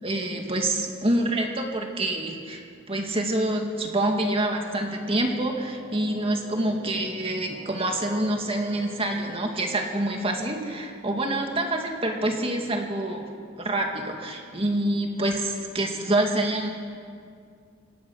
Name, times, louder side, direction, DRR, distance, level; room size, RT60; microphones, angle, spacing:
voice 1, 0.0-2.6 2.9-13.3 13.6-16.7, right 1 dB, 30° right, 2 dB, 2.2 m, -26 dB
Brass instrument, 4.9-9.2, equal, 50° right, 7.4 m, -46 dB
26.0 x 18.5 x 6.4 m, 2.2 s
head